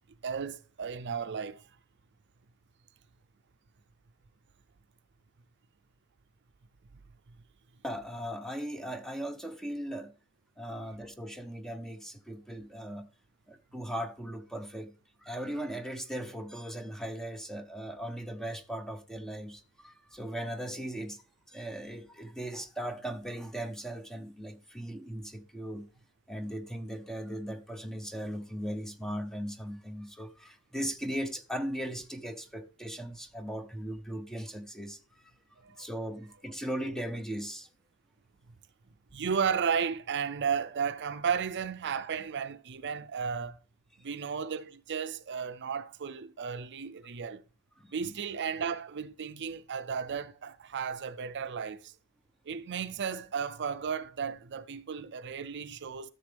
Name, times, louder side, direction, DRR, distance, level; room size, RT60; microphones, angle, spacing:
voice 1, 0.2-1.6 35.6-35.9 39.1-43.6 44.0-47.4 47.9-51.9 52.5-56.1, right 6 dB, 55° right, 0.5 m, -34 dB
voice 2, 7.8-10.1 10.6-13.1 13.5-14.9 15.2-21.2 21.5-25.9 26.3-35.3 35.8-37.7 47.8-47.9, right 1 dB, ahead, 0.7 m, -38 dB
13.0 x 6.8 x 3.4 m
head